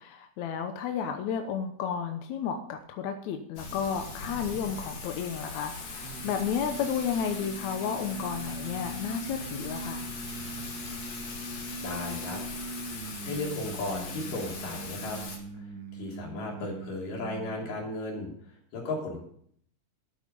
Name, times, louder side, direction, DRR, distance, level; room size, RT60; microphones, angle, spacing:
voice 1, 0.0-10.1, left 7 dB, 70° left, 6 dB, 2.0 m, -32 dB
Thunder / Rain, 3.6-15.4, left 4 dB, 50° left, 3.1 m, -40 dB
sound 1, 6.0-17.9, right 3 dB, 90° right, 0.9 m, -41 dB
voice 2, 11.8-12.4 13.2-15.2 15.5-18.3 18.7-19.2, left 2 dB, 85° left, -1 dB, 4.7 m, -35 dB
12.5 x 9.1 x 5.4 m, 0.64 s
omnidirectional pair, 3.7 m